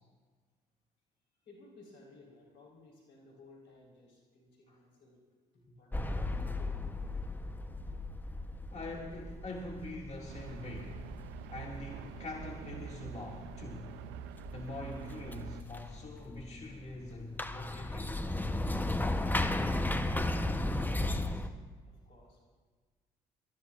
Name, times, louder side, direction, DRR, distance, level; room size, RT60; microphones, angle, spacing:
voice 1, 1.4-5.1 5.5-6.7 7.3-7.6 20.8-22.4, left 2 dB, 70° left, -3 dB, 4.1 m, -58 dB
sound 1, 5.9-21.5, left 2 dB, 10° left, 0.8 m, -36 dB
voice 2, 8.7-11.0 11.5-14.0 14.5-18.2, left 2 dB, 35° left, -1 dB, 2.1 m, -44 dB
sound 2, 10.3-15.6, right 10 dB, 75° right, 0.5 m, -46 dB
25.0 x 13.5 x 2.5 m, 1.5 s
hypercardioid pair, 55°, 19 cm